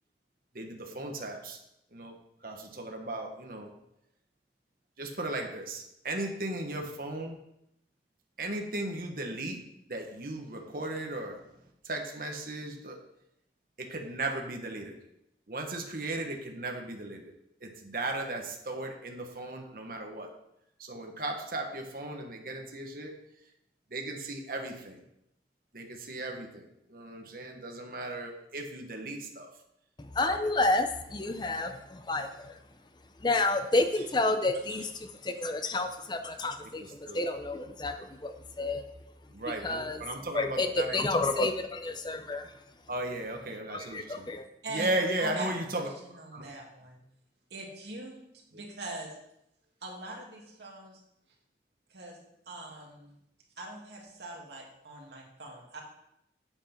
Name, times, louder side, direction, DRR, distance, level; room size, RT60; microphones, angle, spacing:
voice 1, 0.5-1.6 1.9-2.2 2.4-3.7 5.0-7.4 8.4-9.6 9.9-11.4 11.8-13.0 13.8-15.0 15.5-17.3 17.6-20.3 20.8-23.1 23.9-25.0 25.7-29.5 36.8-37.2 39.3-41.0 42.9-44.3 44.7-45.9 46.3-46.5 48.5-48.6, right 2 dB, 55° right, 2 dB, 1.3 m, -36 dB
voice 2, 30.0-32.6 33.2-34.9 35.2-38.8 39.6-40.0 40.3-40.7 40.9-42.5 43.7-44.5, left 2 dB, 25° left, 8 dB, 0.6 m, -30 dB
voice 3, 44.6-47.0 47.5-48.2 48.5-49.1 49.8-51.0 51.9-52.2 52.5-53.1 53.6-55.8, right 2 dB, 75° right, -1 dB, 2.4 m, -42 dB
8.7 x 8.1 x 4.4 m, 0.80 s
head